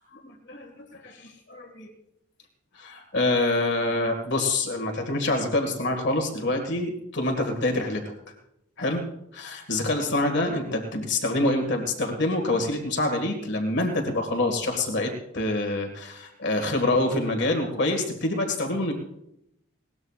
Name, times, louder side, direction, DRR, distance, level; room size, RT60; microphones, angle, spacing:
voice 1, 0.2-1.9 2.8-8.0 8.8-18.9, left 2 dB, 55° left, 4 dB, 1.8 m, -26 dB
20.5 x 18.0 x 2.4 m, 0.79 s
head